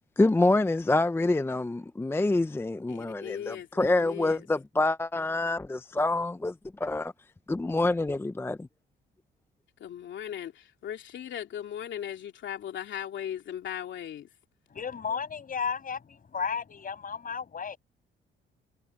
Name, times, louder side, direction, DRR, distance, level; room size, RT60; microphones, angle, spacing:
voice 1, 0.2-6.5 6.8-7.1 7.5-8.7, left 2 dB, 10° left, 0.5 m, -26 dB
voice 2, 2.9-4.5 9.8-14.3, left 10 dB, 70° left, 2.9 m, -38 dB
voice 3, 14.7-17.8, left 6 dB, 45° left, 6.2 m, -33 dB
cardioid pair, 90°, 20 cm